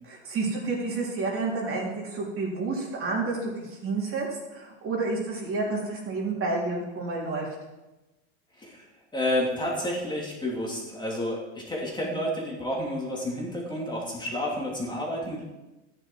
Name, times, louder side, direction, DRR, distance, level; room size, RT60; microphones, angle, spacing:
voice 1, 0.0-7.5, right 3 dB, 35° right, -2 dB, 3.6 m, -30 dB
voice 2, 8.6-8.9 9.1-15.4, left 1 dB, 10° left, -3 dB, 2.8 m, -30 dB
13.0 x 10.5 x 4.7 m, 1.0 s
supercardioid pair, 120°, 36 cm